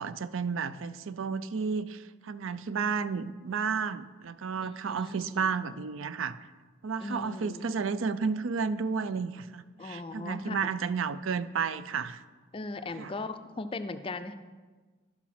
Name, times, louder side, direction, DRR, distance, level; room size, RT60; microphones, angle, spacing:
voice 1, 0.0-6.4 6.8-12.2 13.0-13.1, right 5 dB, 70° right, 14 dB, 0.5 m, -32 dB
voice 2, 4.6-5.5 7.0-7.7 9.8-10.6 12.5-14.3, left 3 dB, 25° left, 10 dB, 0.4 m, -38 dB
11.5 x 6.1 x 5.9 m, 1.4 s
head